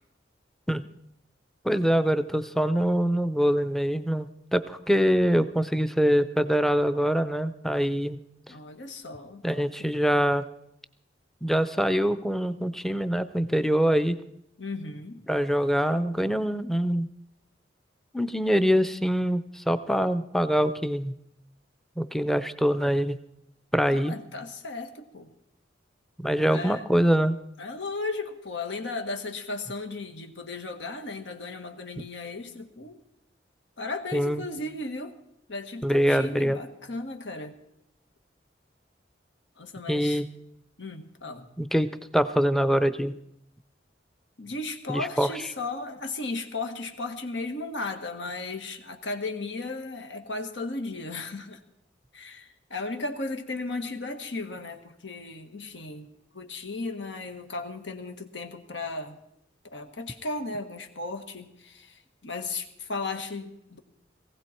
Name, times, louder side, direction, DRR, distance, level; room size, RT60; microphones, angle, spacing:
voice 1, 1.6-8.2 9.4-10.4 11.4-14.2 15.3-17.1 18.1-21.1 22.0-23.2 23.7-24.1 26.2-27.4 34.1-34.4 35.8-36.6 39.9-40.3 41.6-43.1 44.9-45.3, equal, ahead, 12 dB, 0.6 m, -24 dB
voice 2, 8.5-9.9 14.6-15.2 23.9-25.3 26.5-26.8 27.6-33.0 33.8-35.2 35.5-37.6 39.6-40.2 40.8-41.5 44.4-51.6 52.1-56.1 56.3-59.2 59.6-63.8, left 3 dB, 80° left, 6 dB, 1.7 m, -35 dB
18.5 x 16.0 x 4.4 m, 0.79 s
head